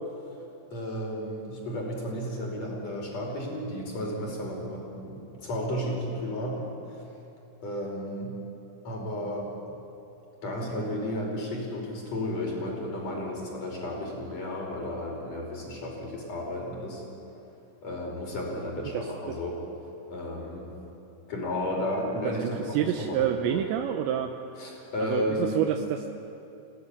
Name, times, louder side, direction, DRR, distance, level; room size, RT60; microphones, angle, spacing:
voice 1, 0.7-7.1 7.6-8.3 8.8-9.5 10.4-17.0 17.8-19.6 20.1-20.7 21.3-23.6 24.6-25.6, left 1 dB, 35° left, -1 dB, 5.8 m, -33 dB
voice 2, 22.2-24.3 25.0-26.1, right 10 dB, 80° right, 4 dB, 3.1 m, -28 dB
27.5 x 17.5 x 9.9 m, 2.9 s
omnidirectional pair, 5.4 m